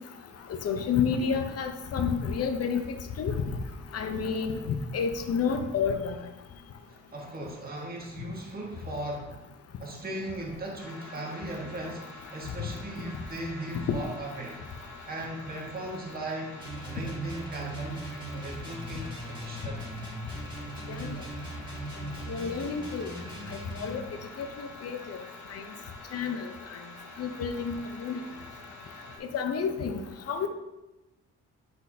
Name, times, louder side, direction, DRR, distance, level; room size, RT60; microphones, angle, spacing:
voice 1, 0.5-2.8 3.2-3.4 3.9-6.2 20.9-21.1 22.3-23.1 23.5-24.0 24.4-25.2 25.5-25.6 26.1-26.5 27.2-28.2 29.3-30.5, left 6 dB, 55° left, 6 dB, 0.8 m, -30 dB
voice 2, 6.9-9.3 9.8-14.6 15.0-19.9, right 1 dB, 30° right, -2 dB, 1.6 m, -38 dB
sound 1, 10.8-29.2, left 2 dB, 75° left, 1.7 m, -47 dB
sound 2, 16.6-24.0, right 1 dB, 15° right, 2.0 m, -39 dB
9.6 x 4.1 x 2.8 m, 1.0 s
cardioid pair, 90°, 30 cm